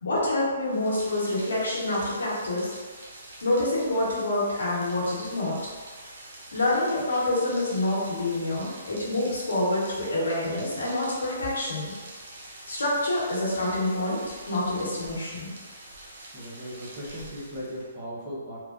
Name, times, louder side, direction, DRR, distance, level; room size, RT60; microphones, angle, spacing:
voice 1, 0.0-2.7 3.4-5.7 6.5-11.9 12.7-14.2 14.5-15.5, left 1 dB, 85° left, -6 dB, 1.1 m, -27 dB
Rain, 0.6-18.0, right 1 dB, 55° right, 0.7 m, -45 dB
voice 2, 16.3-18.6, equal, 25° right, -7 dB, 0.9 m, -37 dB
3.1 x 2.1 x 2.5 m, 1.4 s
hypercardioid pair, 145°, 0 cm